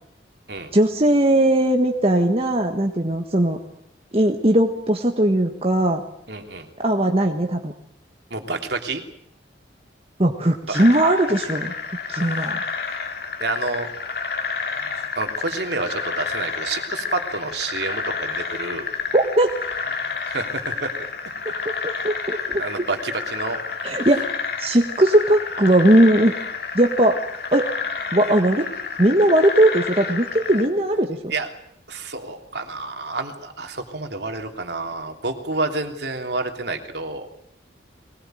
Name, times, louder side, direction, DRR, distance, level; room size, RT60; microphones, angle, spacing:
voice 1, 0.7-3.6 4.1-6.0 6.8-7.7 10.2-11.7 12.1-12.6 19.1-19.5 21.6-22.9 23.8-24.3 24.6-26.3 26.7-27.2 27.5-27.7 28.1-28.7 29.0-31.2, right 1 dB, 30° right, 3 dB, 1.5 m, -19 dB
voice 2, 6.3-6.7 8.3-9.0 10.7-10.8 12.2-12.5 13.4-13.9 15.1-18.9 20.3-20.9 21.5-21.6 22.6-23.6 24.0-24.1 31.3-31.5 31.9-37.3, right 3 dB, 60° right, 5 dB, 3.2 m, -29 dB
sound 1, 10.7-30.7, left 5 dB, 55° left, 2.8 m, -30 dB
22.0 x 20.5 x 9.2 m, 0.70 s
head